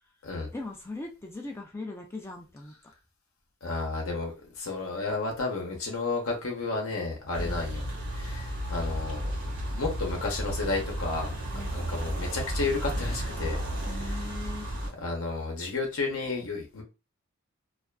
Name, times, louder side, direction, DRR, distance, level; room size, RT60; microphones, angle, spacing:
voice 1, 0.5-2.8 7.4-7.9 11.5-11.9 13.9-14.8, left 2 dB, 10° left, 1 dB, 0.4 m, -40 dB
voice 2, 3.6-9.3 9.7-11.4 11.7-13.6 14.7-16.8, left 3 dB, 80° left, 0 dB, 0.8 m, -32 dB
sound 1, 7.3-14.9, right 1 dB, 60° right, 0.9 m, -33 dB
2.4 x 2.4 x 2.2 m, 0.29 s
head